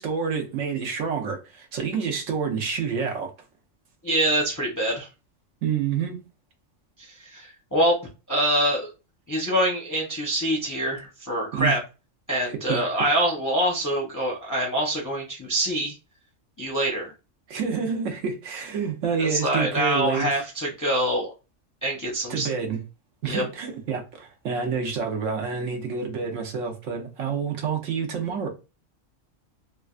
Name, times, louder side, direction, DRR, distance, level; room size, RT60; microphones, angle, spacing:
voice 1, 0.0-3.3 5.6-6.2 11.5-11.8 12.5-12.8 17.5-20.4 22.3-22.8 23.2-28.5, right 6 dB, 80° right, 1.1 m, -28 dB
voice 2, 4.0-5.1 7.0-8.0 8.3-8.9 9.3-11.8 12.3-15.9 16.6-17.1 19.2-21.3 21.8-22.5 23.3-23.4, right 1 dB, 20° left, 0.5 m, -25 dB
3.4 x 2.3 x 2.4 m
omnidirectional pair, 1.3 m